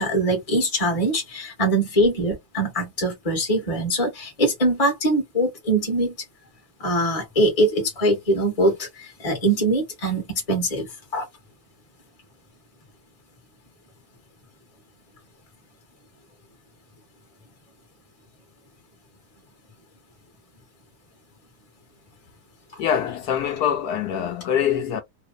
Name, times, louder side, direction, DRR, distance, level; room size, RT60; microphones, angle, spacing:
voice 1, 0.0-6.1 6.8-11.3, right 1 dB, 25° left, 1.1 m, -22 dB
voice 2, 22.8-25.0, left 9 dB, 75° left, 1.2 m, -24 dB
3.0 x 2.0 x 2.4 m
omnidirectional pair, 1.8 m